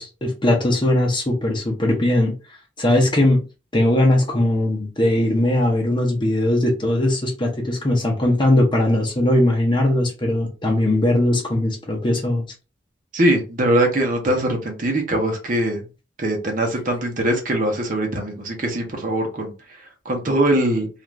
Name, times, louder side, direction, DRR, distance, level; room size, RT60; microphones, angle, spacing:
voice 1, 0.0-2.3 2.8-3.4 3.7-12.5, left 1 dB, 25° left, 0.7 m, -19 dB
voice 2, 13.1-15.8 16.2-20.9, right 1 dB, 45° right, 0.8 m, -22 dB
2.5 x 2.4 x 3.1 m
head